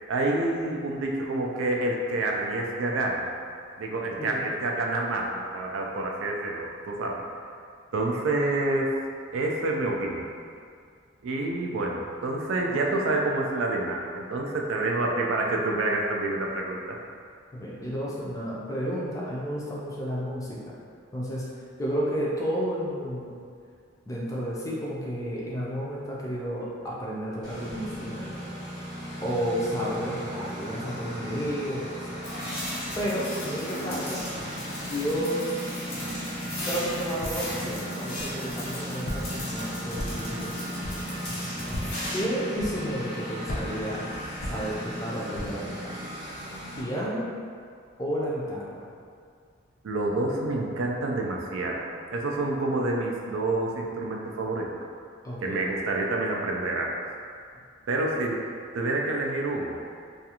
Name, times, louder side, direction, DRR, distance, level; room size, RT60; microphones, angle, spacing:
voice 1, 0.1-3.3 3.8-7.2 7.9-8.9 9.3-10.3 11.2-16.8 49.8-54.7 55.4-57.0 57.9-59.8, right 2 dB, 75° right, 0 dB, 0.4 m, -28 dB
voice 2, 4.2-4.5 12.7-13.0 17.5-20.7 21.1-21.5 21.8-23.3 24.1-28.6 29.2-32.3 32.9-34.3 34.8-35.4 36.6-40.7 42.1-44.0 44.4-46.0 46.8-47.3 48.0-48.8 55.2-55.7, equal, 15° left, -6 dB, 0.4 m, -32 dB
Engine, 27.4-46.8, equal, 20° right, 0.8 m, -37 dB
sound 1, 32.2-42.2, left 1 dB, 90° left, 0.8 m, -36 dB
Walk footsteps, 37.2-37.7 38.2-38.7 39.0-39.5 39.9-40.4 40.8-41.2 41.7-42.1 42.6-43.1 43.4-45.0 45.3-45.7, left 1 dB, 75° left, 0.5 m, -36 dB
2.4 x 2.3 x 2.8 m, 2.2 s
head